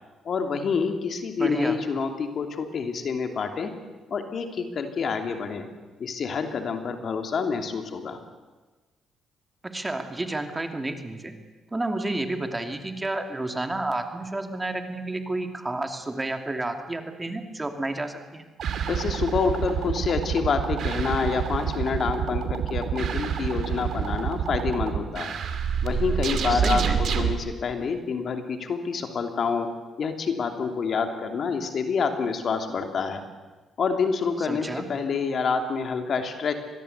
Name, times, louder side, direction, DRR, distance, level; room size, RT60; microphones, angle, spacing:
voice 1, 0.2-3.7 4.1-5.7 6.0-8.2 18.9-25.4 25.8-29.7 30.0-33.2 33.8-36.5, left 5 dB, 55° left, 6 dB, 2.9 m, -27 dB
voice 2, 1.4-1.8 9.6-11.4 11.7-18.4 26.5-27.0 34.4-34.9, right 2 dB, 15° right, 6 dB, 2.6 m, -30 dB
sound 1, 18.6-27.3, right 7 dB, 65° right, 2.5 m, -27 dB
25.0 x 20.0 x 8.3 m, 1.2 s
cardioid pair, 90°, 0 cm